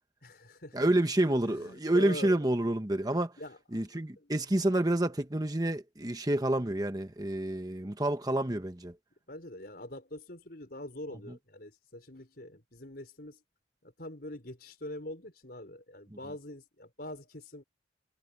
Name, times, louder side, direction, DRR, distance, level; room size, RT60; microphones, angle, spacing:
voice 1, 0.2-0.9 1.2-2.4 3.4-4.3 9.3-13.4 13.8-17.6, left 1 dB, 55° left, 5.7 m, -44 dB
voice 2, 0.7-3.3 3.7-8.9, right 1 dB, 20° right, 1.1 m, -28 dB
head